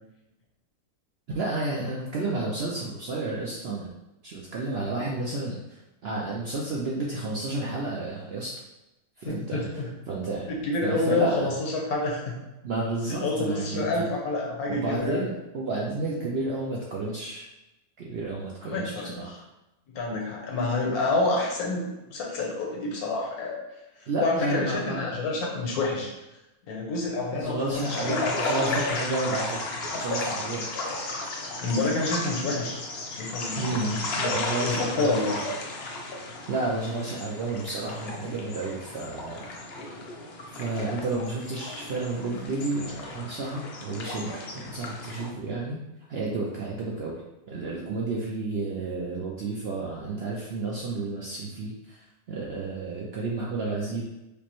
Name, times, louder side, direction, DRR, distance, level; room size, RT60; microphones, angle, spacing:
voice 1, 1.3-3.9 4.2-8.5 9.2-9.6 10.1-11.5 12.6-14.1 14.7-17.5 18.0-19.3 24.1-25.1 27.3-29.6 29.9-30.7 32.4-32.5 33.6-35.1 36.5-39.8 40.5-45.8 46.1-47.2 47.5-54.0, right 3 dB, 65° right, -3 dB, 0.6 m, -31 dB
voice 2, 9.2-9.9 10.5-12.4 13.1-15.2 18.6-19.4 19.9-23.6 24.0-26.1 26.7-28.3 28.6-29.0 31.6-32.8 33.1-34.1 34.6-35.5 39.8-40.0, left 2 dB, 85° left, -2 dB, 1.4 m, -28 dB
sound 1, 27.8-45.3, left 2 dB, 60° left, 0.6 m, -34 dB
5.0 x 2.1 x 3.0 m, 0.97 s
omnidirectional pair, 1.6 m